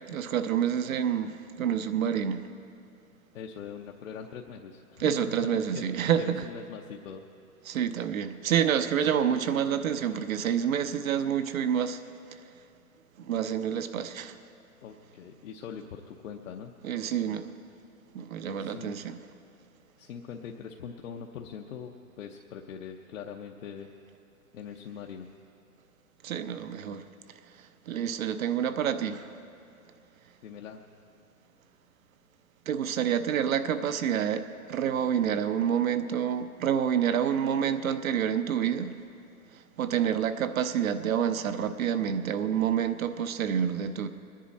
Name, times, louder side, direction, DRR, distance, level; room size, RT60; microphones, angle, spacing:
voice 1, 0.1-2.5 5.0-6.5 7.7-12.0 12.3-12.4 13.2-14.4 16.8-17.5 18.1-19.2 26.2-29.3 32.7-39.0 39.5-44.1, right 8 dB, 65° right, 10 dB, 0.9 m, -28 dB
voice 2, 3.3-5.9 6.2-7.3 14.8-16.7 18.6-18.9 20.0-23.9 24.5-25.3 30.4-30.8, left 7 dB, 60° left, 1 dB, 0.9 m, -42 dB
21.0 x 10.0 x 4.2 m, 2.5 s
hypercardioid pair, 130°, 44 cm